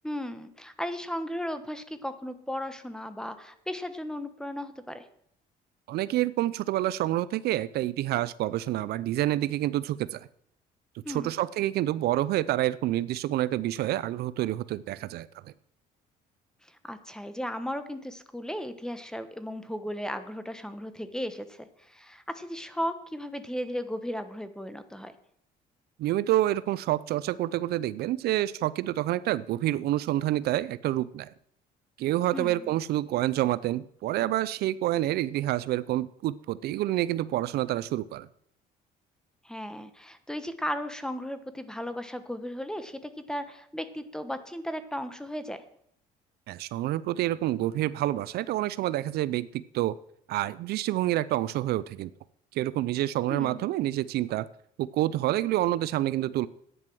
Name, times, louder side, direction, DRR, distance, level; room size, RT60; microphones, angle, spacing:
voice 1, 0.0-5.1 11.0-11.3 16.6-25.1 32.3-32.7 39.4-45.6 53.3-53.7, equal, 5° left, 11 dB, 1.1 m, -36 dB
voice 2, 5.9-10.3 11.1-15.5 26.0-31.3 32.0-38.3 46.5-49.9 50.3-52.1 52.5-54.5 54.8-56.5, right 14 dB, 70° right, 17 dB, 0.4 m, -28 dB
11.0 x 9.2 x 6.2 m, 0.69 s
cardioid pair, 110°, 17 cm